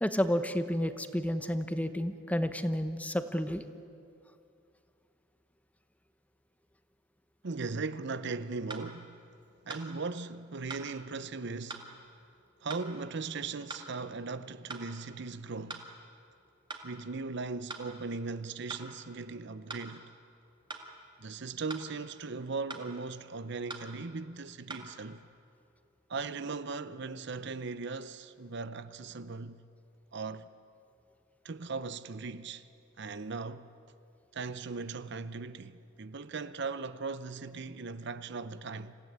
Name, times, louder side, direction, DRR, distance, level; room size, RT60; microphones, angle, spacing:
voice 1, 0.0-3.6, equal, 5° left, 0.9 m, -31 dB
voice 2, 7.4-9.2 9.6-11.9 12.6-15.9 16.8-20.1 21.2-25.2 26.1-29.6 30.1-30.5 31.4-32.7 33.0-33.7 34.3-38.9, right 4 dB, 60° right, 0.7 m, -38 dB
sound 1, 8.7-8.9 9.7-9.9 10.7-10.9 11.7-11.9 12.7-12.9 13.7-13.9 14.7-14.9 15.7-15.9 16.7-16.9 17.7-17.9 18.7-18.9 19.7-19.9 20.7-20.9 21.7-21.9 22.7-22.9 23.7-23.9 24.7-24.9, right 3 dB, 25° right, 2.2 m, -42 dB
27.0 x 16.0 x 9.4 m
head